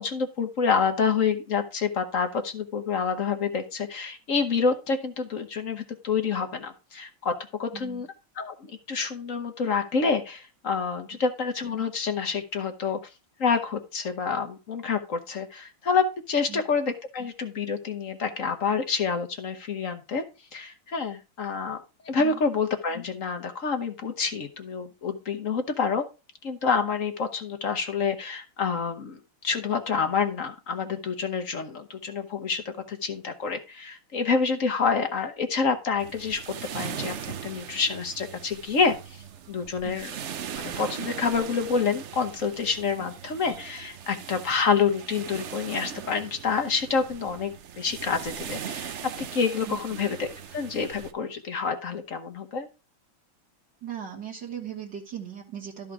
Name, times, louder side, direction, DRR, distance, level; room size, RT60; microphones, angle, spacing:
voice 1, 0.0-7.3 7.6-8.1 8.4-13.0 13.4-20.2 20.5-21.8 22.0-26.0 26.4-29.2 29.4-32.6 32.9-39.0 39.5-40.1 40.6-52.7, left 5 dB, 45° left, 7 dB, 1.2 m, -28 dB
voice 2, 7.7-8.0 16.5-16.6 22.2-22.4 39.8-40.0 43.0-43.1 49.6-49.8 53.8-55.9, right 9 dB, 60° right, -3 dB, 2.0 m, -38 dB
sound 1, 36.0-51.1, right 8 dB, 90° right, 0.6 m, -39 dB
12.5 x 5.2 x 4.8 m, 0.29 s
omnidirectional pair, 2.2 m